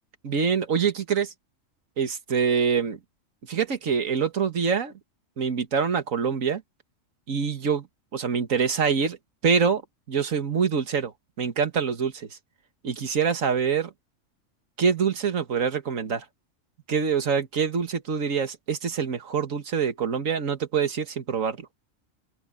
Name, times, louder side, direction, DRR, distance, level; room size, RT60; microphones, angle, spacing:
voice 1, 0.2-1.3 2.0-3.0 3.5-4.9 5.4-6.6 7.3-7.9 8.1-9.2 9.4-9.8 10.1-11.1 11.4-12.4 12.8-13.9 14.8-16.3 16.9-21.7, right 6 dB, 80° right, 2.0 m, -25 dB
open air
omnidirectional pair, 1.4 m